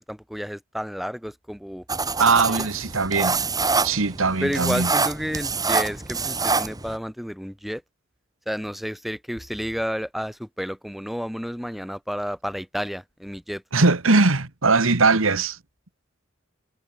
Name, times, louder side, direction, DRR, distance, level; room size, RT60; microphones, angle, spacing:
voice 1, 0.0-1.8 2.5-2.7 4.4-7.8 8.5-13.6, equal, ahead, 6.2 m, -31 dB
sound 1, 1.9-7.0, right 4 dB, 20° right, 2.6 m, -25 dB
voice 2, 2.2-3.4 3.8-4.9 13.7-15.6, right 3 dB, 90° right, 1.8 m, -20 dB
head